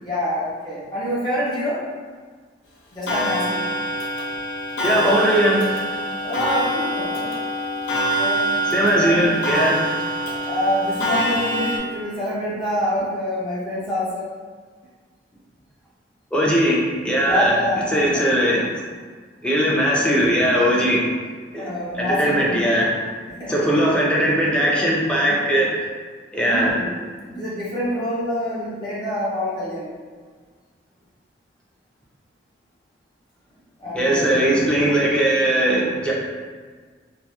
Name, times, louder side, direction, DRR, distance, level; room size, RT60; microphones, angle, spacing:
voice 1, 0.0-1.8 2.9-3.6 6.2-7.3 8.2-8.5 9.0-9.3 10.4-14.3 17.2-18.3 21.5-22.7 23.3-23.6 26.4-27.0 27.3-29.9 33.8-34.5, equal, 25° left, -9 dB, 0.8 m, -26 dB
Clock, 3.1-11.8, right 1 dB, 75° left, 0.6 m, -25 dB
voice 2, 4.8-5.6 8.7-9.8 16.3-17.5 17.9-18.8 19.4-21.0 21.5-23.0 23.5-25.7 26.3-26.7 33.9-36.1, equal, 5° left, -4 dB, 0.4 m, -19 dB
2.8 x 2.4 x 2.2 m, 1.5 s
head